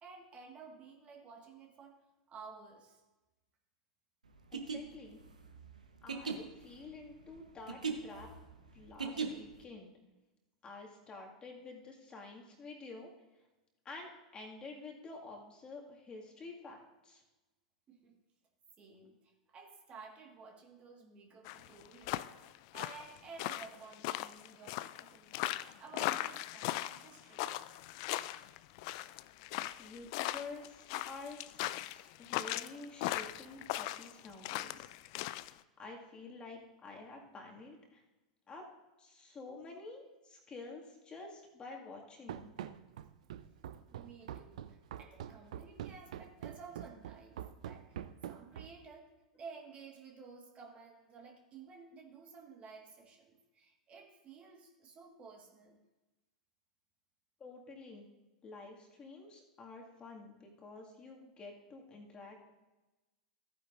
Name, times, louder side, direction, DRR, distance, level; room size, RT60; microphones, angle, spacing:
voice 1, 0.0-3.0 17.9-18.2 18.8-25.4 25.8-27.6 43.9-48.0 48.3-55.8, right 5 dB, 30° right, 1 dB, 1.7 m, -54 dB
sound 1, 4.4-9.6, right 5 dB, 85° right, 1.0 m, -40 dB
voice 2, 4.5-5.2 6.0-8.3 8.7-9.9 10.6-13.1 13.8-17.2 29.8-34.9 35.4-38.0 38.5-38.7 39.0-42.5 57.4-58.1 58.4-62.5, left 3 dB, 25° left, 0 dB, 2.1 m, -49 dB
sound 2, 21.5-35.5, left 16 dB, 50° left, 0.3 m, -38 dB
Run, 42.3-48.9, right 10 dB, 65° right, 0.5 m, -45 dB
14.5 x 9.4 x 2.6 m, 1.1 s
figure-of-eight pair, 90°, 4 cm